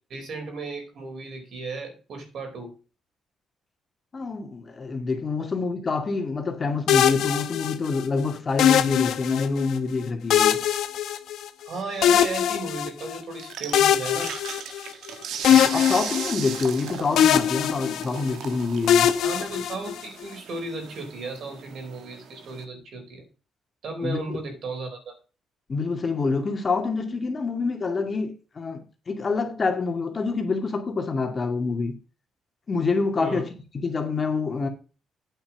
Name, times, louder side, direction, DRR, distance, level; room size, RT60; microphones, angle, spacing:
voice 1, 0.1-2.7 11.7-14.3 19.2-23.2 23.8-25.1 33.2-33.4, right 3 dB, 65° right, 4.5 m, -35 dB
voice 2, 4.1-10.6 15.5-19.1 24.0-24.4 25.7-32.0 32.7-33.5 33.7-34.7, left 4 dB, 35° left, 2.1 m, -27 dB
sound 1, 6.9-8.0 8.6-9.7 10.3-11.7 12.0-13.2 13.7-15.1 15.4-16.8 17.2-18.4 18.9-20.2, left 10 dB, 75° left, 0.9 m, -22 dB
sound 2, 13.4-22.6, right 8 dB, 80° right, 1.4 m, -38 dB
9.0 x 5.9 x 5.9 m
cardioid pair, 90°, 0 cm